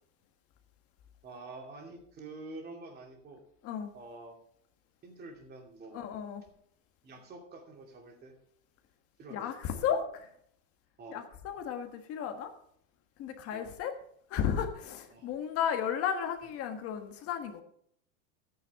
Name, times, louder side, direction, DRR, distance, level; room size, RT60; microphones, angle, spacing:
voice 1, 1.2-3.4 3.9-4.4 5.0-6.1 7.0-8.3 9.2-10.0 11.0-11.3 13.5-13.8 15.1-15.3, right 2 dB, 25° right, 1 dB, 2.6 m, -47 dB
voice 2, 5.9-6.4 9.3-10.0 11.1-12.5 13.2-13.9 14.3-17.6, left 8 dB, 35° left, 6 dB, 1.5 m, -33 dB
13.0 x 9.4 x 3.6 m, 0.67 s
supercardioid pair, 155°, 42 cm